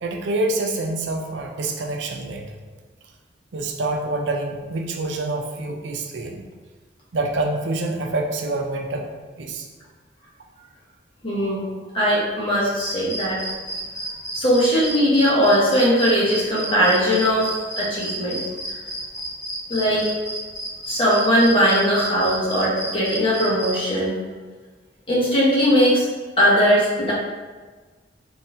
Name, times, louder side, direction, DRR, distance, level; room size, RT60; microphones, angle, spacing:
voice 1, 0.0-2.5 3.5-6.4 7.1-9.1 9.4-9.7, right 2 dB, 80° right, 2 dB, 0.5 m, -26 dB
voice 2, 11.2-11.6 11.9-13.4 14.3-17.5 17.8-18.4 18.7-18.8 19.7-20.1 20.9-24.1 25.1-26.1 26.4-27.1, equal, 30° left, -6 dB, 1.2 m, -19 dB
sound 1, 12.7-23.7, right 1 dB, 25° right, 1.3 m, -31 dB
4.2 x 2.6 x 3.5 m, 1.4 s
head